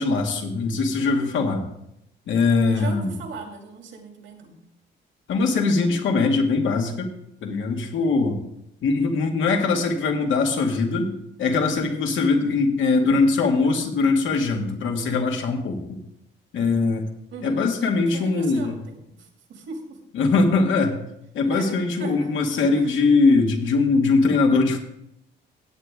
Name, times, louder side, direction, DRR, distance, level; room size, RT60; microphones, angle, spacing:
voice 1, 0.0-1.6 2.3-3.1 5.3-7.1 7.4-8.4 8.8-15.8 16.5-17.0 17.4-18.8 20.1-21.0 21.3-24.8, left 3 dB, 75° left, 3 dB, 2.0 m, -21 dB
voice 2, 2.7-4.6 17.3-17.6 18.1-20.0 21.4-22.4 22.7-22.9, right 4 dB, 75° right, 2 dB, 2.7 m, -38 dB
17.0 x 8.1 x 3.6 m, 0.79 s
cardioid pair, 90°, 20 cm